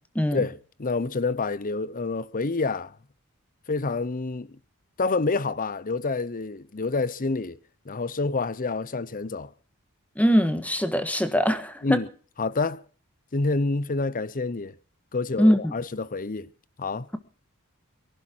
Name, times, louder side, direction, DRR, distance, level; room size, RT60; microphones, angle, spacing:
voice 1, 0.3-2.9 3.7-4.6 5.0-7.6 7.9-9.5 11.8-12.1 12.4-12.8 13.3-14.7 15.1-16.5 16.8-17.1, left 3 dB, 40° left, 0.7 m, -28 dB
voice 2, 10.2-12.0 15.4-15.7, equal, 5° left, 1.4 m, -22 dB
23.0 x 11.5 x 4.5 m
head